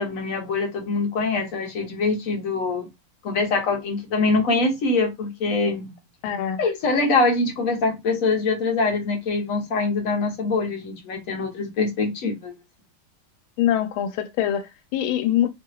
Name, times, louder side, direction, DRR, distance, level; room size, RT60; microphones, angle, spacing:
voice 1, 0.0-2.9 3.2-5.9 6.6-12.5, left 3 dB, 55° left, 1.1 m, -24 dB
voice 2, 6.2-6.6 13.6-15.5, left 11 dB, 85° left, 1.4 m, -24 dB
3.3 x 2.8 x 2.3 m
omnidirectional pair, 2.2 m